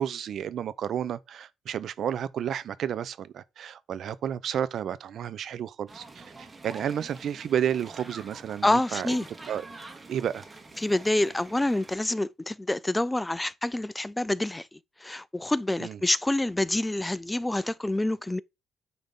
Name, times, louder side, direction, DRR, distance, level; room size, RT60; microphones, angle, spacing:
voice 1, 0.0-9.1 9.5-9.7 10.1-10.4 15.8-16.0, right 9 dB, 65° right, 0.7 m, -31 dB
sound 1, 5.9-12.0, right 2 dB, 25° right, 1.8 m, -47 dB
voice 2, 8.6-9.3 10.8-14.7 15.0-18.4, left 1 dB, 10° left, 0.4 m, -27 dB
9.4 x 3.6 x 5.3 m
cardioid pair, 90°, 0 cm